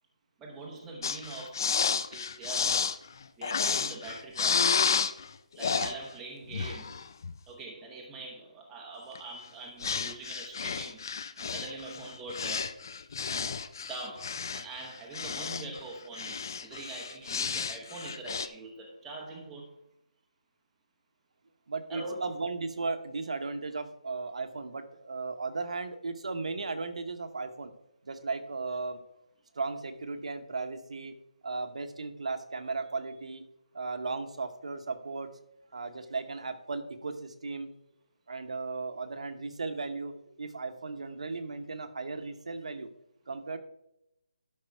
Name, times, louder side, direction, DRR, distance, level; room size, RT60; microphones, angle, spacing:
voice 1, 0.4-2.8 3.4-4.7 5.5-6.9 7.5-11.1 11.4-12.8 13.2-13.6 13.9-19.7 21.9-22.3, right 3 dB, 5° right, -2 dB, 0.8 m, -43 dB
sound 1, 1.0-5.3 5.6-5.9 6.5-7.4 9.2-9.3 9.8-15.8 16.2-18.5, left 6 dB, 30° left, 0.4 m, -31 dB
voice 2, 21.7-27.7 28.0-29.0 29.5-31.1 31.4-33.4 33.7-35.3 35.7-37.7 38.3-42.9 43.3-43.6, right 3 dB, 55° right, 8 dB, 1.0 m, -36 dB
12.0 x 5.4 x 4.6 m, 0.82 s
hypercardioid pair, 175°, 4 cm